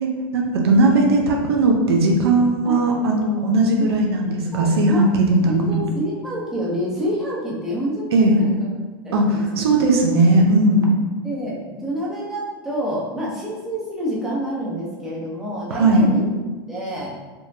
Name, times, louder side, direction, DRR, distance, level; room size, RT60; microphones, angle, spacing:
voice 1, 0.0-5.8 8.1-8.4 9.1-11.0 15.7-16.1, right 2 dB, 85° right, 0 dB, 0.7 m, -18 dB
voice 2, 4.3-5.0 5.4-8.5 9.0-9.6 11.2-16.3 16.7-17.1, equal, 5° right, -6 dB, 0.8 m, -28 dB
4.4 x 2.2 x 2.7 m, 1.3 s
supercardioid pair, 130°, 13 cm